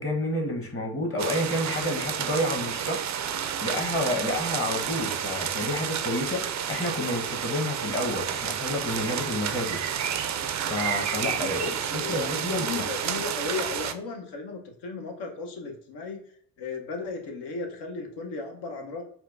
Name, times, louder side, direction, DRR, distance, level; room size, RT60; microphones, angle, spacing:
voice 1, 0.0-9.8 10.7-12.9, left 1 dB, 30° left, 2 dB, 1.2 m, -30 dB
sound 1, 1.2-13.9, right 8 dB, 40° right, 0.4 m, -30 dB
voice 2, 11.6-16.2 16.6-19.0, left 4 dB, 65° left, 3 dB, 1.0 m, -35 dB
4.3 x 2.3 x 2.5 m, 0.62 s
supercardioid pair, 55°, 43 cm